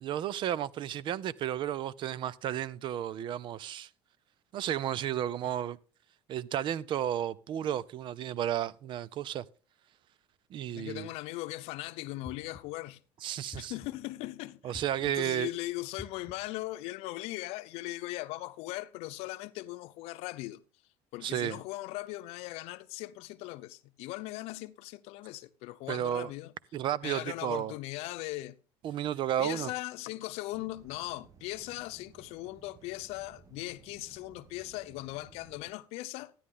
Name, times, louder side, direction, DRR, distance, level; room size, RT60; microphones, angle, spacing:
voice 1, 0.0-3.9 4.5-5.8 6.3-9.4 10.5-11.1 13.2-13.7 14.6-15.5 21.2-21.6 25.9-26.3 26.7-27.7 28.8-29.7, right 11 dB, 50° right, 0.6 m, -33 dB
voice 2, 10.7-13.0 13.5-20.6 21.1-26.5 27.0-28.6 29.4-36.3, left 18 dB, 70° left, 0.7 m, -39 dB
sound 1, 12.2-12.9 13.5-14.2 14.7-15.4 16.0-16.6, left 3 dB, 15° left, 0.5 m, -49 dB
sound 2, 30.5-35.7, right 6 dB, 30° right, 1.1 m, -58 dB
13.0 x 10.0 x 3.7 m
cardioid pair, 115°, 11 cm